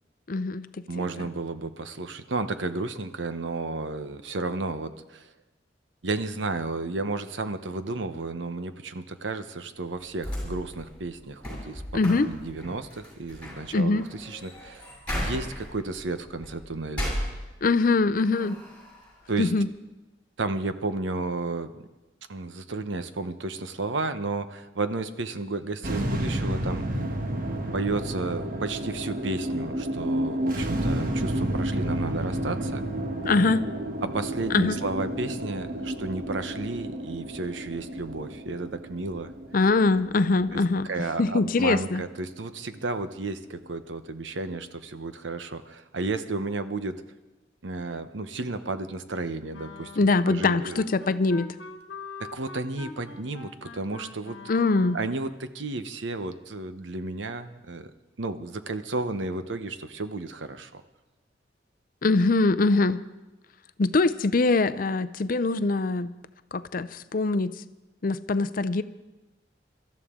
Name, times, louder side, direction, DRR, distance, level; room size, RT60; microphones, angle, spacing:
voice 1, 0.3-0.7 1.0-1.1 11.9-12.3 13.7-14.0 17.6-18.6 19.4-19.7 33.2-33.6 34.5-34.8 39.5-40.9 41.2-42.0 50.0-51.5 54.5-55.0 62.0-63.0 63.8-66.1 66.5-67.5 68.0-68.8, left 3 dB, 50° left, 14 dB, 0.5 m, -23 dB
voice 2, 0.9-5.3 6.0-11.8 12.2-17.1 19.3-19.5 20.4-21.9 22.3-27.0 27.7-32.8 34.0-39.3 40.5-47.0 47.6-50.8 52.2-54.4 54.9-57.9 58.2-60.8, right 3 dB, 85° right, 10 dB, 0.9 m, -32 dB
sound 1, 10.2-17.9 18.3-19.1, equal, 10° left, 6.9 m, -36 dB
sound 2, 25.8-42.2, right 1 dB, 50° right, 1.3 m, -31 dB
Wind instrument woodwind instrument, 49.5-55.3, left 4 dB, 80° left, 1.2 m, -44 dB
24.0 x 13.0 x 3.7 m, 1.1 s
head